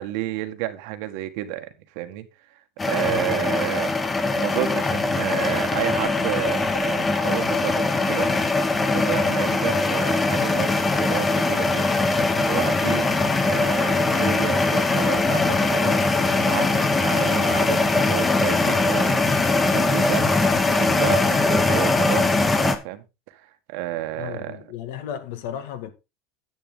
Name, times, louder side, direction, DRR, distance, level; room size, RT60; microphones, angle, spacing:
voice 1, 0.0-4.0 4.3-8.3 8.8-12.0 12.5-13.2 13.4-16.0 16.4-19.2 19.6-20.3 20.8-23.0 23.3-24.6, right 15 dB, 70° right, 1.5 m, -31 dB
sound 1, 2.8-22.8, left 3 dB, 15° left, 1.3 m, -21 dB
voice 2, 24.1-25.9, left 9 dB, 85° left, 1.9 m, -34 dB
10.0 x 8.6 x 3.7 m
cardioid pair, 145°, 0 cm